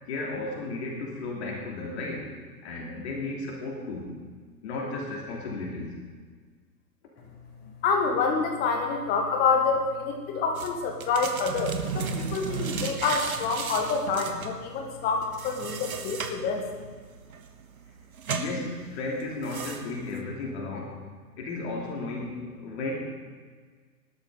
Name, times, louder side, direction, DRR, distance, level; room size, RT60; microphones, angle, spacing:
voice 1, 0.1-2.3 2.6-4.2 4.6-6.0 7.1-7.2 18.3-21.1 21.4-22.9, left 2 dB, 40° left, -2 dB, 3.1 m, -34 dB
voice 2, 7.8-16.7, left 4 dB, 20° left, 3 dB, 1.8 m, -27 dB
sound 1, 10.5-20.2, right 5 dB, 55° right, 1.4 m, -35 dB
19.5 x 12.5 x 4.0 m, 1.6 s
figure-of-eight pair, 125°, 49 cm